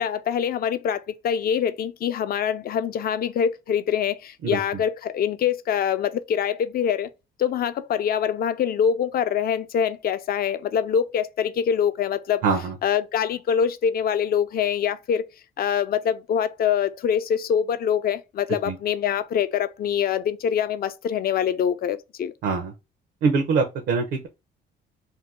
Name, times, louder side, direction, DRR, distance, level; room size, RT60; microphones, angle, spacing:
voice 1, 0.0-7.1 7.4-12.4 12.8-15.3 15.6-22.3, left 8 dB, 50° left, 0.4 m, -24 dB
voice 2, 12.4-12.7 18.7-18.8 22.4-22.7 23.2-24.3, right 5 dB, 80° right, 0.6 m, -23 dB
2.7 x 2.2 x 3.3 m
cardioid pair, 90°, 20 cm